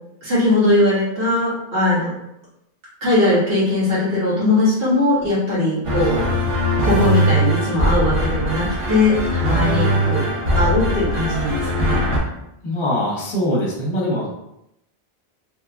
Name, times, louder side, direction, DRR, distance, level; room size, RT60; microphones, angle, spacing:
voice 1, 0.2-2.1 3.0-6.2 6.8-10.2 10.5-12.0, left 2 dB, 85° right, -10 dB, 1.2 m, -19 dB
sound 1, 5.8-12.2, equal, 45° right, 0.4 m, -20 dB
voice 2, 12.6-14.3, left 1 dB, 35° left, -4 dB, 0.7 m, -22 dB
2.8 x 2.2 x 2.4 m, 0.83 s
omnidirectional pair, 1.1 m